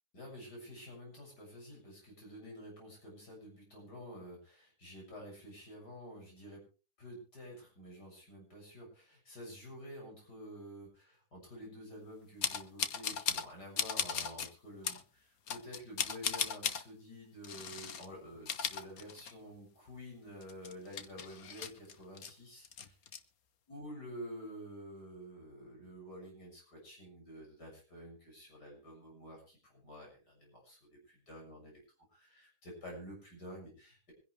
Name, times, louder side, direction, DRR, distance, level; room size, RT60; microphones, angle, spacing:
voice 1, 0.1-6.6 7.0-22.9 23.7-34.1, equal, 85° left, -1 dB, 7.6 m, -50 dB
sound 1, 12.4-13.5 13.8-14.5 14.8-15.0 15.5-16.8 17.4-18.1 18.4-19.6 19.9-20.0 20.4-22.3 22.6-23.2, left 7 dB, 65° left, 1.5 m, -37 dB
24.5 x 10.5 x 3.4 m, 0.34 s
omnidirectional pair, 1.7 m